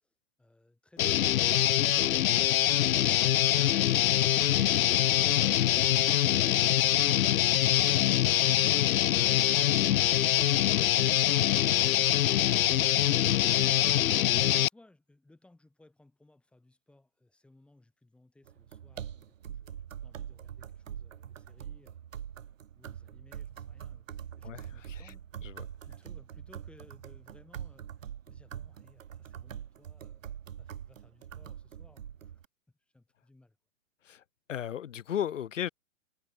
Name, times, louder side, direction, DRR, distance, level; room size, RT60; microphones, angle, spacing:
voice 1, 0.0-4.2 14.6-22.0 22.7-24.1 24.4-25.3 25.9-30.2 30.6-32.3 32.9-33.6, left 2 dB, 5° left, 4.4 m, -61 dB
Guitar, 1.0-14.7, left 13 dB, 85° left, 0.6 m, -24 dB
sound 1, 18.5-32.5, right 9 dB, 70° right, 5.5 m, -44 dB
voice 2, 24.4-25.1 25.4-25.7 34.0-34.2 34.5-35.7, left 10 dB, 65° left, 2.9 m, -35 dB
hypercardioid pair, 165°, 41 cm